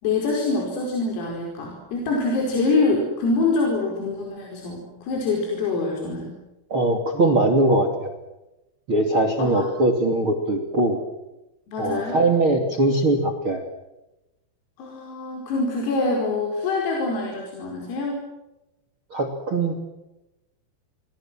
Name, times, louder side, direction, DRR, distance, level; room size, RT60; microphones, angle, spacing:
voice 1, 0.0-6.4 9.4-9.7 11.7-12.2 14.8-18.2, left 3 dB, 80° left, 0 dB, 7.6 m, -25 dB
voice 2, 6.7-8.1 8.9-11.0 11.8-13.6 19.1-19.9, right 2 dB, 35° right, 6 dB, 2.4 m, -21 dB
29.0 x 24.5 x 7.7 m, 0.97 s
omnidirectional pair, 6.0 m